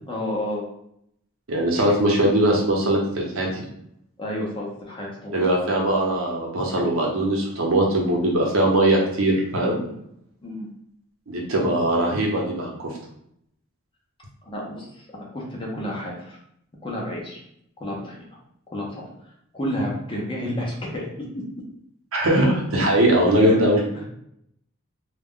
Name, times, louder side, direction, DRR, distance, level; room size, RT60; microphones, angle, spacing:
voice 1, 0.1-0.6 4.2-5.5 9.8-10.0 10.4-10.7 14.4-16.4 16.8-17.4 17.8-18.2 18.7-19.1 19.5-21.1 23.4-23.6 23.9-24.1, left 1 dB, 25° left, -3 dB, 0.6 m, -31 dB
voice 2, 1.5-3.6 5.3-9.8 11.3-13.0 22.1-23.8, right 1 dB, 75° right, -1 dB, 0.8 m, -21 dB
2.3 x 2.1 x 3.6 m, 0.74 s
head